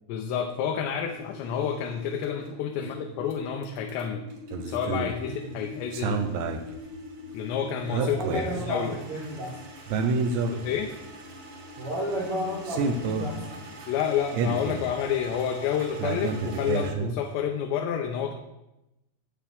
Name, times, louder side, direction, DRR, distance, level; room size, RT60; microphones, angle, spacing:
voice 1, 0.1-4.2 4.6-6.2 7.3-8.9 10.5-10.9 13.9-18.3, left 8 dB, 85° left, 2 dB, 3.1 m, -29 dB
sound 1, 1.1-16.1, left 4 dB, 65° left, 2.3 m, -45 dB
sound 2, 1.1-2.5 3.3-16.9, right 3 dB, 45° right, 3.7 m, -48 dB
sound 3, 4.5-17.2, right 4 dB, 80° right, 3.2 m, -30 dB
voice 2, 5.2-5.5 8.0-9.6 11.8-13.7, equal, 65° right, -4 dB, 1.3 m, -33 dB
14.5 x 8.8 x 3.6 m, 0.93 s
omnidirectional pair, 5.0 m